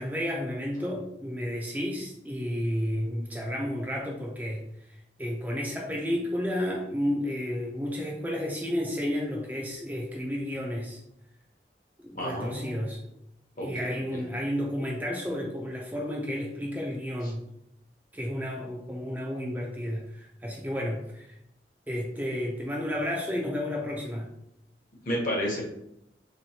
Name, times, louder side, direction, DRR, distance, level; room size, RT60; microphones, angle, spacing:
voice 1, 0.0-4.6 5.2-11.0 12.1-13.0 13.6-17.4 18.1-21.3 21.9-24.3, equal, 10° right, -2 dB, 0.4 m, -31 dB
voice 2, 12.1-12.9 13.6-14.2 25.0-25.6, equal, 50° left, -2 dB, 0.9 m, -31 dB
3.6 x 3.0 x 2.8 m, 0.80 s
head